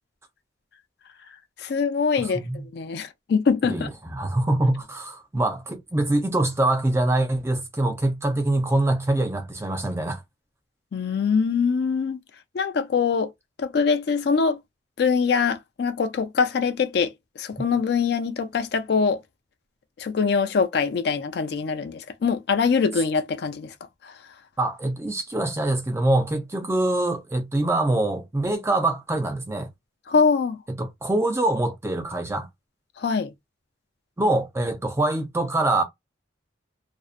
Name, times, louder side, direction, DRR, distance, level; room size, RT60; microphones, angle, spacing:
voice 1, 1.6-3.9 10.9-12.2 12.5-13.3 13.6-14.6 15.0-19.2 20.0-23.7 24.0-24.2 30.1-30.6 33.0-33.3, left 5 dB, 55° left, 0.3 m, -23 dB
voice 2, 2.2-2.6 3.6-3.9 4.1-10.2 24.6-29.7 30.8-32.5 34.2-35.8, right 2 dB, 15° right, 0.4 m, -24 dB
2.5 x 2.0 x 2.4 m
head